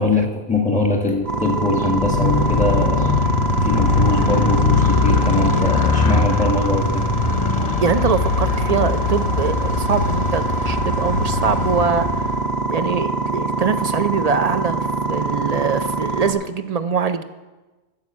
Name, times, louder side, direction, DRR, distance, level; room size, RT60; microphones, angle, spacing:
voice 1, 0.0-7.1 7.6-7.7, left 2 dB, 5° left, 2 dB, 1.6 m, -22 dB
sound 1, 1.3-16.3, right 3 dB, 70° right, 1.2 m, -24 dB
Motorcycle, 1.9-12.6, left 5 dB, 40° left, 0.8 m, -21 dB
voice 2, 7.8-12.3 12.7-17.2, right 5 dB, 50° right, 10 dB, 0.5 m, -23 dB
9.5 x 7.4 x 7.3 m, 1.2 s
omnidirectional pair, 1.1 m